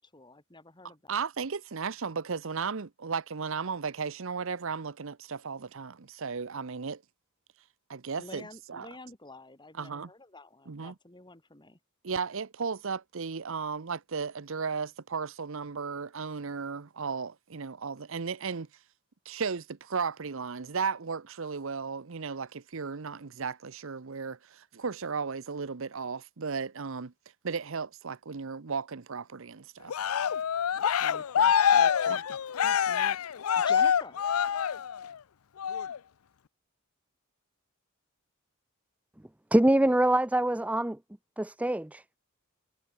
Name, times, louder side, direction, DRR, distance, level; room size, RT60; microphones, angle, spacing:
voice 1, 0.0-1.2 8.2-11.8 31.0-32.2 32.9-33.2 33.6-34.2, left 2 dB, 20° left, 2.9 m, -48 dB
voice 2, 1.1-7.0 7.9-8.9 9.7-10.1 10.7-10.9 12.0-18.7 19.3-27.1 27.4-30.0 32.1-32.2 32.6-32.8, right 5 dB, 65° right, 0.8 m, -35 dB
Cheering, 29.9-35.1 35.6-36.0, left 8 dB, 80° left, 0.5 m, -26 dB
voice 3, 39.5-41.0 41.4-42.0, right 1 dB, 5° right, 0.4 m, -24 dB
head